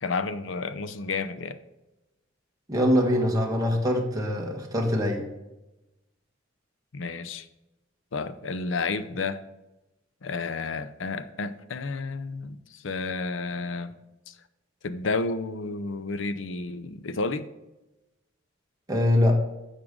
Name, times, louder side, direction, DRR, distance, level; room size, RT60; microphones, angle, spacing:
voice 1, 0.0-1.6 6.9-7.5 8.1-9.4 10.2-14.0 14.3-14.4 14.8-17.5, left 3 dB, 70° left, 13 dB, 0.6 m, -31 dB
voice 2, 2.7-5.2 18.9-19.4, left 1 dB, 20° right, 1 dB, 1.4 m, -23 dB
11.0 x 6.6 x 3.8 m, 1.0 s
head